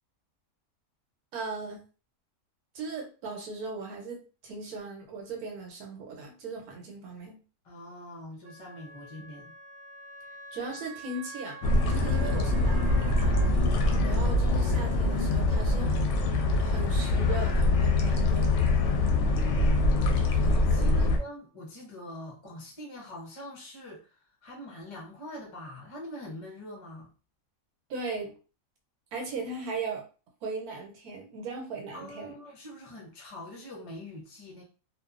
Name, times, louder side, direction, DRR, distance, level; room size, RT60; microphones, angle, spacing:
voice 1, 1.3-1.8 2.7-7.4 10.5-11.6 11.9-13.4 14.0-15.9 16.6-18.6 20.3-20.5 20.9-21.1 27.9-28.3 29.1-30.0 30.4-32.3, right 3 dB, 90° right, 1 dB, 1.3 m, -38 dB
voice 2, 7.6-9.5 18.8-19.5 20.4-27.1 31.9-34.6, left 1 dB, 45° left, -1 dB, 0.4 m, -44 dB
Wind instrument woodwind instrument, 8.4-13.5, right 3 dB, 60° right, 0.7 m, -46 dB
sound 1, 11.6-21.2, left 2 dB, 65° left, 0.8 m, -24 dB
2.7 x 2.3 x 2.4 m, 0.36 s
omnidirectional pair, 1.5 m